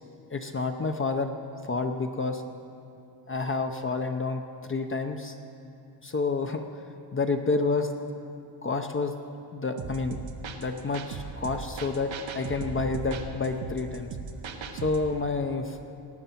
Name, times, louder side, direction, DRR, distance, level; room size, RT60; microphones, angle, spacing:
voice 1, 0.3-1.3 1.6-2.4 3.3-5.4 6.0-6.7 7.1-7.9 8.6-9.1 9.5-10.2 10.6-14.2 14.7-15.8, left 3 dB, 25° left, 5 dB, 0.7 m, -29 dB
sound 1, 9.8-15.1, right 5 dB, 75° right, 1.2 m, -38 dB
18.0 x 9.3 x 5.8 m, 2.6 s
cardioid pair, 110°, 46 cm